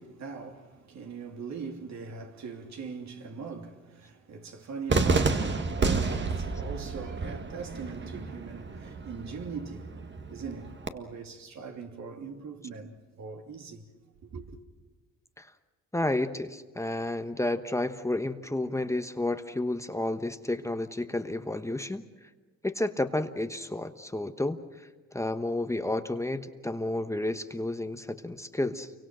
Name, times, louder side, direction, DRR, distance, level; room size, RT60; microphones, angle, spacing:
voice 1, 0.0-10.0 10.3-13.9 14.2-14.6, right 5 dB, 65° right, 3.1 m, -41 dB
Cheering / Fireworks, 4.9-10.9, right 4 dB, 35° right, 1.8 m, -30 dB
voice 2, 15.9-22.3 22.6-28.9, left 2 dB, 10° left, 1.1 m, -31 dB
29.5 x 24.5 x 6.3 m
cardioid pair, 90°, 30 cm